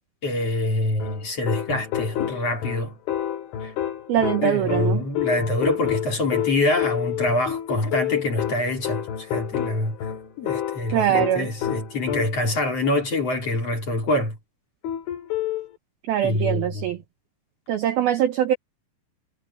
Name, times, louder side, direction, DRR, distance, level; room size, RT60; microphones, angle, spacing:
voice 1, 0.2-2.9 3.6-3.7 4.4-10.0 10.4-14.4 16.2-16.8, left 2 dB, 35° left, 3.8 m, -25 dB
sound 1, 1.0-12.6 14.8-15.7, left 10 dB, 65° left, 5.3 m, -29 dB
voice 2, 4.1-5.0 10.9-11.5 16.1-17.0 17.7-18.5, right 11 dB, 85° right, 2.1 m, -22 dB
omnidirectional pair, 5.9 m